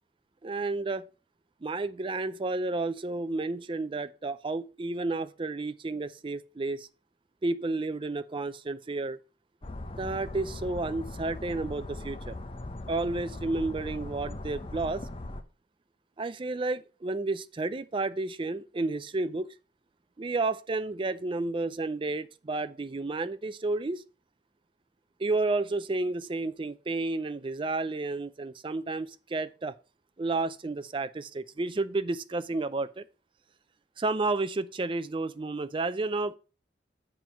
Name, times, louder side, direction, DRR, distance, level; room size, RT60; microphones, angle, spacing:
voice 1, 0.4-1.1 1.6-6.9 7.4-9.2 9.9-12.4 12.9-15.1 16.2-19.6 20.2-24.0 25.2-29.7 30.2-33.0 34.0-36.4, right 3 dB, 30° right, 0.4 m, -31 dB
sound 1, 9.6-15.4, left 2 dB, 30° left, 0.7 m, -39 dB
7.4 x 4.5 x 6.1 m
head